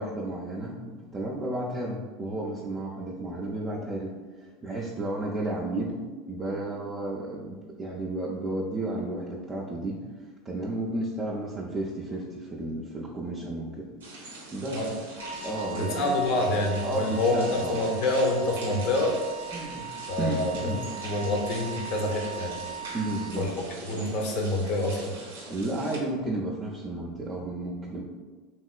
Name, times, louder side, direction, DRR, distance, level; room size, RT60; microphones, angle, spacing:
voice 1, 0.0-6.0 6.3-10.0 10.4-13.9 14.2-14.9 15.4-16.2 16.8-17.8 19.5-19.9 20.2-20.8 22.9-23.5 25.5-28.0, right 1 dB, 25° right, -4 dB, 0.4 m, -33 dB
sound 1, 14.0-26.0, right 2 dB, 80° right, 0.5 m, -43 dB
Wind instrument woodwind instrument, 15.2-23.4, right 6 dB, 75° left, 0.9 m, -39 dB
voice 2, 15.8-19.2 20.1-22.6 23.4-23.5 23.8-25.1, left 2 dB, 55° left, 1 dB, 0.6 m, -27 dB
2.9 x 2.8 x 2.3 m, 1.4 s
hypercardioid pair, 85°, 0 cm